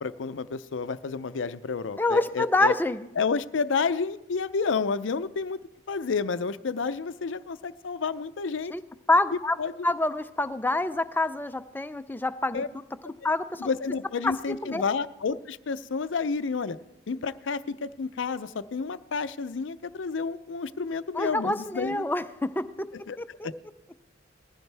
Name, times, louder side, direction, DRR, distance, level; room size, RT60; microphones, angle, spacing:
voice 1, 0.0-2.8 3.2-5.6 5.9-8.7 9.6-9.7 12.5-12.7 13.6-16.8 17.1-22.1 22.9-23.5, left 5 dB, 75° left, 13 dB, 0.5 m, -30 dB
voice 2, 2.0-3.1 8.7-8.8 9.1-9.6 9.8-12.6 13.0-13.6 14.2-14.3 14.6-14.8 21.1-22.9 23.2-23.5, left 2 dB, 10° left, 11 dB, 0.4 m, -26 dB
19.5 x 15.0 x 3.4 m, 0.92 s
head